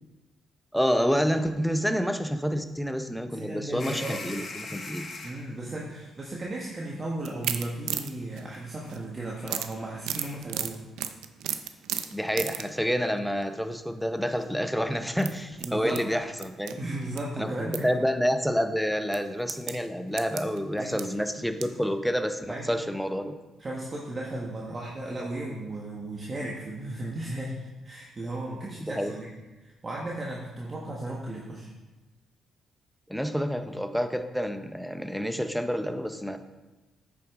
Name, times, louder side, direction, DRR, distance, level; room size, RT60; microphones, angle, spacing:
voice 1, 0.7-5.1 12.1-16.8 17.4-23.4 28.8-29.1 33.1-36.4, equal, ahead, 8 dB, 0.6 m, -28 dB
voice 2, 3.3-4.2 5.2-10.8 15.6-16.0 16.6-18.2 20.8-21.0 22.5-22.7 23.6-29.3 29.6-31.7, right 1 dB, 30° right, -4 dB, 1.2 m, -35 dB
sound 1, 3.8-5.4 6.6-6.7 8.7-8.9 9.2-10.4, left 3 dB, 50° left, 1.3 m, -41 dB
sound 2, 7.2-9.1 9.4-12.7 13.2-13.5 14.3-14.5 15.1-17.2 17.5-17.8 18.2-18.3 19.1-21.8 22.3-22.4 22.7-22.8, right 10 dB, 90° right, 0.5 m, -35 dB
8.6 x 6.2 x 3.6 m, 1.2 s
cardioid pair, 90°, 0 cm